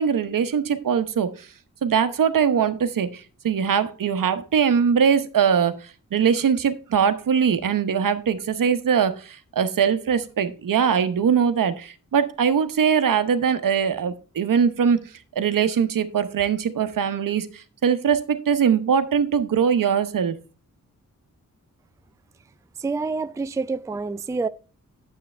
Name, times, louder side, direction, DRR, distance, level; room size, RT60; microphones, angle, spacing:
voice 1, 0.0-1.5 1.8-15.1 15.4-20.4, right 7 dB, 80° right, 0.9 m, -22 dB
voice 2, 22.8-24.5, right 4 dB, 10° right, 0.3 m, -27 dB
9.5 x 7.5 x 3.3 m
wide cardioid pair, 100°, 33 cm